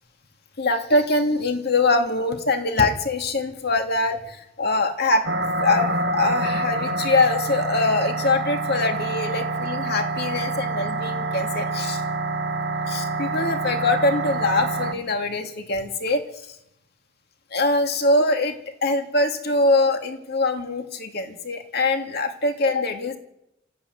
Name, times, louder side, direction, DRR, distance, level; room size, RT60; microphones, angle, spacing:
voice 1, 0.6-5.3 5.6-12.0 12.9-16.2 16.5-16.6 17.5-18.5 18.8-23.2, left 2 dB, 55° left, 5 dB, 2.4 m, -23 dB
sound 1, 5.2-14.9, right 2 dB, 65° right, 1.7 m, -27 dB
26.0 x 14.5 x 9.3 m, 0.85 s
head